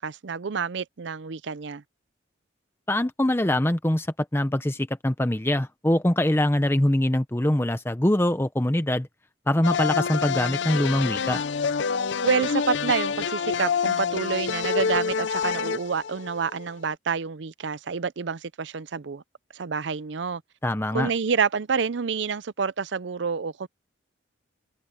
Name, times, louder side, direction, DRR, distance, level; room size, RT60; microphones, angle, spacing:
voice 1, 0.0-1.8 12.2-19.2 19.5-20.4 20.9-23.7, right 5 dB, 65° right, 0.5 m, -28 dB
voice 2, 2.9-4.1 4.3-9.1 9.5-11.4 20.6-21.1, left 1 dB, 10° left, 0.7 m, -23 dB
sound 1, 9.6-16.6, left 6 dB, 65° left, 0.5 m, -27 dB
head